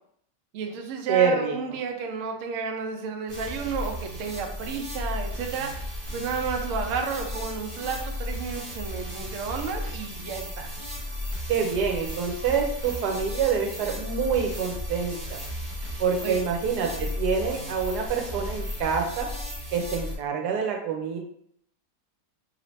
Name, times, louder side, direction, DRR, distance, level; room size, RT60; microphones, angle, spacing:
voice 1, 0.5-5.9 6.1-10.7 16.2-16.4, right 5 dB, 90° right, 3 dB, 0.6 m, -32 dB
voice 2, 1.1-1.6 11.5-15.4 16.0-19.3 19.7-21.2, right 6 dB, 75° right, 2 dB, 1.1 m, -26 dB
sound 1, 3.3-20.2, left 1 dB, 40° right, 1.1 m, -35 dB
2.9 x 2.8 x 3.1 m, 0.68 s
omnidirectional pair, 1.9 m